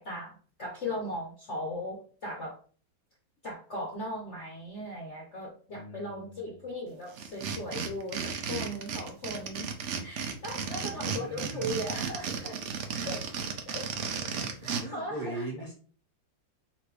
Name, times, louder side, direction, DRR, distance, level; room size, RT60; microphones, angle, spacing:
voice 1, 0.0-2.6 3.4-9.7 10.0-12.6 12.9-13.3 13.6-13.9 14.3-15.5, left 1 dB, 50° left, -1 dB, 0.9 m, -38 dB
voice 2, 5.7-6.6 10.5-11.8 13.2-13.4 14.1-15.7, right 2 dB, 20° right, -3 dB, 1.4 m, -41 dB
sound 1, 7.1-14.8, right 6 dB, 65° right, 0.7 m, -34 dB
4.2 x 2.6 x 4.7 m, 0.42 s
omnidirectional pair, 2.0 m